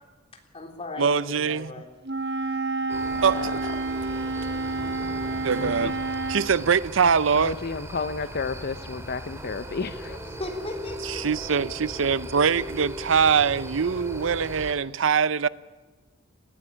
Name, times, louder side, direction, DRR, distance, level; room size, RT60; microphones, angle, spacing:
voice 1, 0.3-1.9 10.3-11.5, left 2 dB, 30° left, 3.5 m, -37 dB
voice 2, 1.0-1.7 3.2-3.6 5.4-5.9 6.3-7.5 11.0-15.5, right 6 dB, 80° right, 0.6 m, -23 dB
Wind instrument woodwind instrument, 2.0-6.5, right 3 dB, 55° right, 1.2 m, -29 dB
sound 1, 2.9-14.7, equal, 15° right, 2.5 m, -38 dB
voice 3, 3.1-3.5 5.5-5.9 7.3-10.2, left 4 dB, 55° left, 0.7 m, -32 dB
18.0 x 15.0 x 9.8 m
head